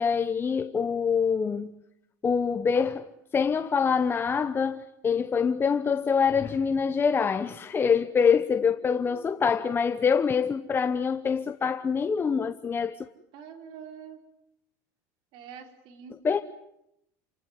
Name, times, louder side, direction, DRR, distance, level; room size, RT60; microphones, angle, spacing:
voice 1, 0.0-1.7 2.2-13.1 16.2-16.4, left 6 dB, 25° left, 1.0 m, -25 dB
voice 2, 8.8-9.6 13.3-14.2 15.3-16.2, right 7 dB, 60° right, 4.5 m, -46 dB
28.5 x 18.5 x 9.6 m
supercardioid pair, 120°, 9 cm